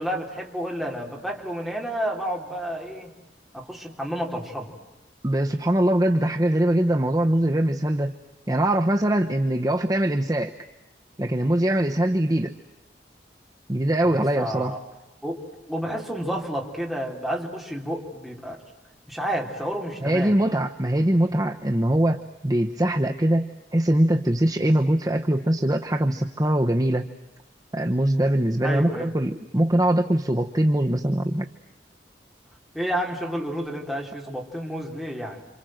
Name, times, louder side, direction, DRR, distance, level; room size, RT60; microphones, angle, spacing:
voice 1, 0.0-3.2 3.5-4.8 14.1-14.8 15.2-18.6 19.1-20.4 28.6-29.1 32.7-35.5, equal, ahead, 0 dB, 3.8 m, -30 dB
voice 2, 5.2-8.1 8.5-10.5 11.2-12.5 13.7-14.7 20.0-27.1 27.7-31.5, right 1 dB, 20° right, 4 dB, 0.9 m, -22 dB
28.5 x 27.0 x 7.8 m, 0.99 s
head